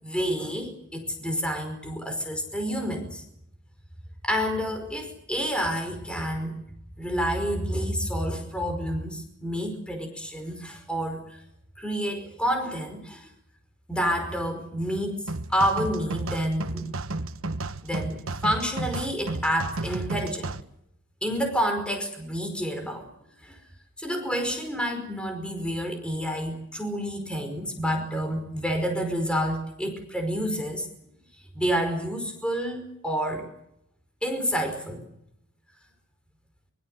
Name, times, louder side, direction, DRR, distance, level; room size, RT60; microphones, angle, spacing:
voice 1, 0.0-3.2 4.2-6.6 7.0-11.2 11.8-13.3 13.9-16.9 17.8-20.6 21.2-23.1 23.4-23.6 24.0-30.9 31.5-33.5 34.2-35.0, equal, 5° left, 5 dB, 5.1 m, -29 dB
sound 1, 15.3-20.6, right 2 dB, 70° right, 1.3 m, -32 dB
24.5 x 23.5 x 7.8 m, 0.75 s
head